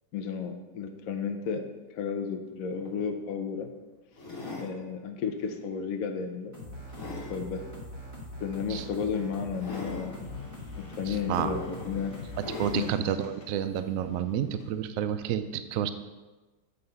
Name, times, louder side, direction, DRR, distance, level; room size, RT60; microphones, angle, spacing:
voice 1, 0.1-3.7 4.6-6.5 7.3-7.7 8.4-10.3 10.8-12.1 12.7-12.9, left 6 dB, 60° left, 4 dB, 1.0 m, -33 dB
sound 1, 2.5-2.6 2.9-3.1 4.1-4.7 5.4-5.6 6.2-7.4 8.7-8.8 9.6-10.1 11.0-11.1 11.5-11.9 12.3-12.9 13.7-13.8, left 2 dB, 45° left, 1.7 m, -40 dB
sound 2, 6.5-12.9, left 1 dB, 10° right, 1.7 m, -42 dB
sound 3, 9.8-14.7, left 3 dB, 80° left, 1.9 m, -49 dB
voice 2, 11.1-11.5 12.4-15.9, right 9 dB, 80° right, 10 dB, 0.7 m, -30 dB
8.4 x 4.0 x 5.4 m, 1.2 s
omnidirectional pair, 2.0 m